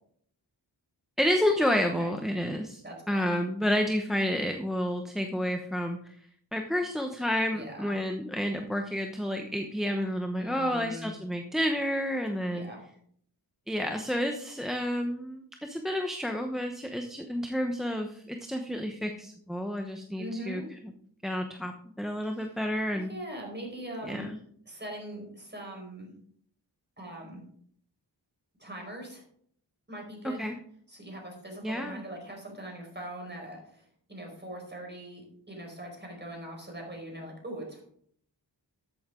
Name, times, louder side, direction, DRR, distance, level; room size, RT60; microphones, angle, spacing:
voice 1, 1.2-2.8 3.1-6.1 6.5-12.7 13.7-20.6 21.2-23.1 24.0-24.4 30.2-30.5 31.6-32.0, equal, ahead, 4 dB, 0.9 m, -30 dB
voice 2, 2.8-3.2 7.5-7.9 10.4-11.1 12.5-12.8 20.2-20.7 22.4-22.5 22.9-24.3 24.7-26.1 27.0-27.4 28.6-29.2 29.9-30.5 30.9-33.8 34.1-37.8, right 1 dB, 25° right, 0 dB, 4.7 m, -41 dB
13.0 x 8.6 x 3.8 m, 0.64 s
wide cardioid pair, 80°, 42 cm